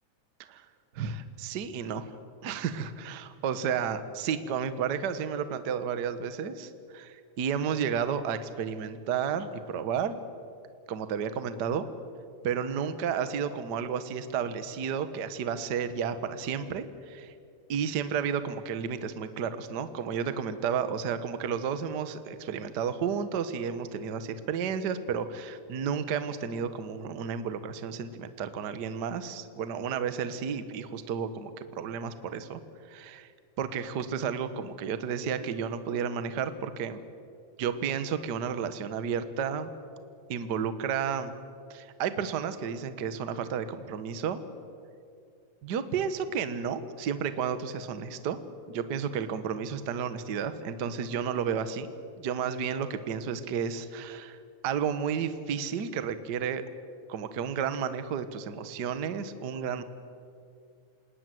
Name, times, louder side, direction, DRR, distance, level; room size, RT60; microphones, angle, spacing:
voice 1, 0.9-2.1 2.4-10.2 10.9-11.9 12.4-17.3 17.7-32.6 32.9-33.3 33.6-37.0 37.6-39.7 40.3-41.3 41.7-44.4 45.6-48.4 48.7-54.4 54.6-56.6 57.1-59.8, right 7 dB, 60° right, 11 dB, 1.1 m, -32 dB
27.5 x 19.0 x 7.8 m, 2.3 s
omnidirectional pair, 3.5 m